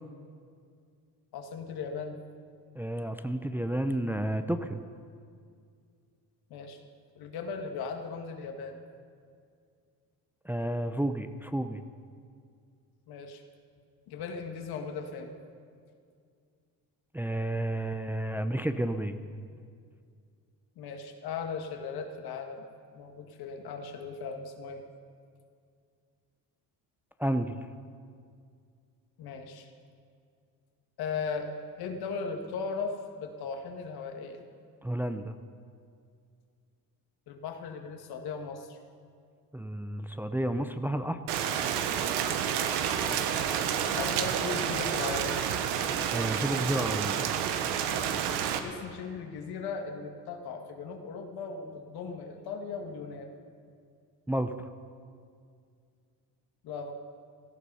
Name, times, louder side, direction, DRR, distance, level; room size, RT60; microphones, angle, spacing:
voice 1, 1.3-2.2 6.5-6.8 7.2-8.8 13.1-13.4 14.1-15.3 20.8-22.7 22.9-24.8 29.2-29.7 31.0-31.5 31.8-34.4 37.3-38.8 43.0-43.4 44.0-45.4 48.6-53.3 56.6-56.9, left 5 dB, 65° left, 4 dB, 1.8 m, -37 dB
voice 2, 2.8-4.8 10.4-11.8 17.1-19.2 27.2-27.6 34.8-35.4 39.5-41.2 46.1-47.2 54.3-54.7, right 1 dB, 5° right, 8 dB, 0.6 m, -31 dB
Rain, 41.3-48.6, right 8 dB, 90° right, 1.2 m, -29 dB
17.5 x 13.0 x 5.6 m, 2.3 s
cardioid pair, 105°, 40 cm